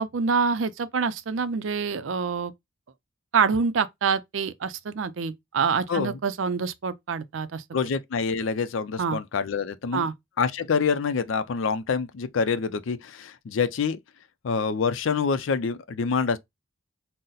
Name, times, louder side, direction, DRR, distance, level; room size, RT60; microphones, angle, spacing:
voice 1, 0.0-2.5 3.3-7.6 9.0-9.2 9.9-10.1, right 5 dB, 75° right, 0.4 m, -26 dB
voice 2, 7.7-10.1 10.4-14.0 14.4-16.4, left 5 dB, 75° left, 0.4 m, -26 dB
3.9 x 2.1 x 3.9 m
head